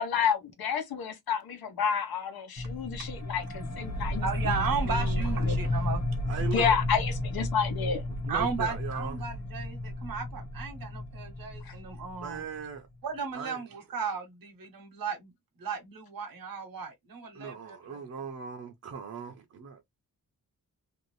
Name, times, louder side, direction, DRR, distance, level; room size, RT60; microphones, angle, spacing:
voice 1, 0.0-4.6 4.9-5.6 6.5-8.0 11.6-11.7, left 7 dB, 85° left, 0.9 m, -30 dB
sound 1, 2.6-12.7, left 1 dB, 50° left, 1.2 m, -32 dB
voice 2, 4.2-6.0 8.3-12.4 13.0-15.3 15.6-18.0, right 5 dB, 70° right, 0.9 m, -35 dB
voice 3, 6.3-6.8 8.2-9.3 12.2-12.9 13.3-13.6 17.3-19.8, right 6 dB, 45° right, 0.6 m, -38 dB
2.6 x 2.4 x 3.0 m
wide cardioid pair, 160°, 36 cm